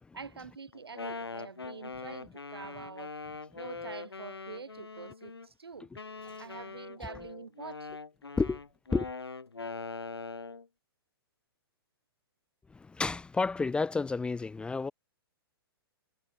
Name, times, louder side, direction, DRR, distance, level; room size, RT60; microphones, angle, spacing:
voice 1, 0.1-3.1 3.5-5.9 6.4-8.0, right 5 dB, 75° right, 5.3 m, -46 dB
Wind instrument woodwind instrument, 0.7-5.5 5.9-10.7, left 4 dB, 80° left, 2.1 m, -42 dB
voice 2, 12.7-14.9, left 4 dB, 5° left, 0.6 m, -30 dB
figure-of-eight pair, 110°, 13 cm